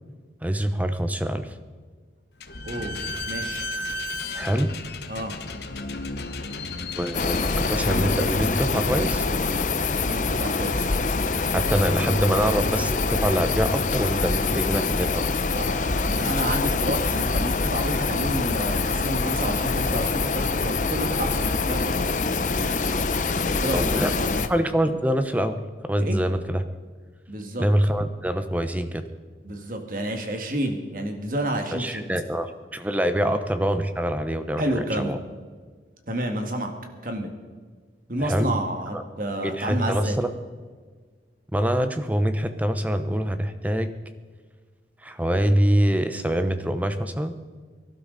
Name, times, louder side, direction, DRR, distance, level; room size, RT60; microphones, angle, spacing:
voice 1, 0.4-1.5 4.3-4.7 7.0-9.3 11.5-15.3 23.7-24.1 24.5-25.6 25.9-26.6 27.6-29.0 31.7-35.2 38.2-38.5 38.9-39.0 39.4-40.3 41.5-43.9 45.0-47.3, equal, 10° right, 9 dB, 0.8 m, -25 dB
Slam / Squeak, 2.4-9.7, left 2 dB, 65° left, 1.1 m, -33 dB
voice 2, 2.6-3.0 3.3-3.7 5.1-5.3 10.0-10.9 15.5-22.1 23.6-24.4 26.0-26.2 27.3-27.7 29.4-32.0 33.2-33.4 34.6-35.2 36.1-36.7 37.0-37.3 38.1-40.2, right 1 dB, 50° right, 4 dB, 2.0 m, -30 dB
sound 1, 7.1-24.5, left 3 dB, 45° left, 0.8 m, -25 dB
23.5 x 12.0 x 4.1 m, 1.5 s
head